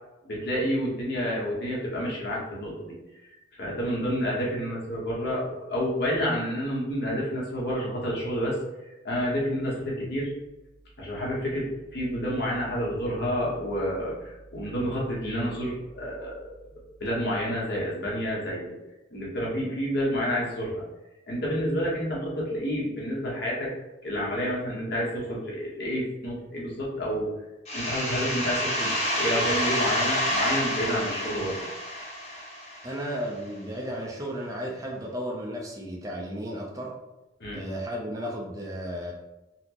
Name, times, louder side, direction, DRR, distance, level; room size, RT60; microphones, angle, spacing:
voice 1, 0.2-2.9 3.6-8.5 9.0-10.3 11.0-16.3 17.0-18.7 19.1-20.8 21.3-23.7 24.0-27.3 27.7-31.6 37.4-37.6, equal, 55° left, -5 dB, 1.1 m, -29 dB
sound 1, 27.7-33.2, equal, 35° left, 0.6 m, -28 dB
voice 2, 32.8-36.9 37.5-39.1, equal, 20° right, -2 dB, 0.4 m, -34 dB
4.1 x 2.1 x 2.8 m, 1.0 s
head